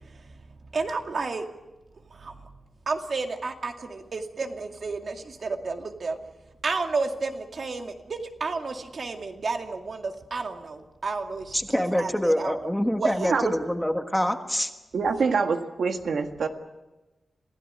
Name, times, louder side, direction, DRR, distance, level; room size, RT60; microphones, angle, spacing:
voice 1, 0.7-1.4 2.2-2.3 2.9-6.2 6.6-11.5 11.7-12.7 13.0-13.3, right 4 dB, 50° right, 4 dB, 2.3 m, -31 dB
voice 2, 11.5-14.7, equal, 5° left, 6 dB, 1.4 m, -25 dB
voice 3, 14.9-16.5, right 5 dB, 80° right, 6 dB, 1.7 m, -25 dB
27.0 x 16.5 x 9.7 m, 1.1 s
wide cardioid pair, 165°, 0 cm